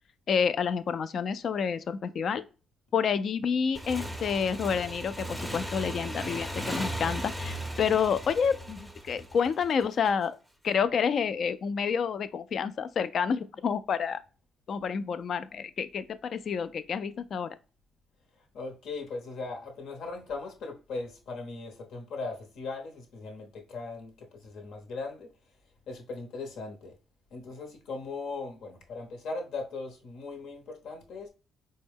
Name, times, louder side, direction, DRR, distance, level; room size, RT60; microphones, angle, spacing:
voice 1, 0.3-2.5 2.9-10.4 10.6-14.2 14.7-17.6, left 6 dB, 55° left, 0.3 m, -29 dB
Motorcycle / Engine, 3.7-10.1, right 1 dB, ahead, 0.6 m, -37 dB
voice 2, 18.5-25.3 25.9-26.9 27.3-31.3, left 3 dB, 80° left, 0.9 m, -39 dB
4.3 x 2.2 x 3.4 m
cardioid pair, 90°, 0 cm